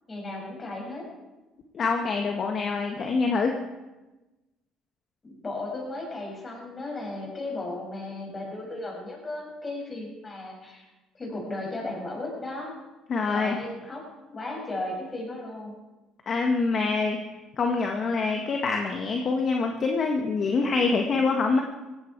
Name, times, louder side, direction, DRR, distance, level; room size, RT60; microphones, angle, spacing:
voice 1, 0.1-1.1 5.2-10.9 11.1-12.8 13.3-14.0 14.3-15.8, left 2 dB, 25° left, -1 dB, 7.1 m, -35 dB
voice 2, 1.7-3.6 13.1-13.6 16.3-17.2 17.6-21.6, left 4 dB, 45° left, 3 dB, 1.7 m, -25 dB
17.0 x 16.5 x 4.7 m, 1.1 s
cardioid pair, 100°, 0 cm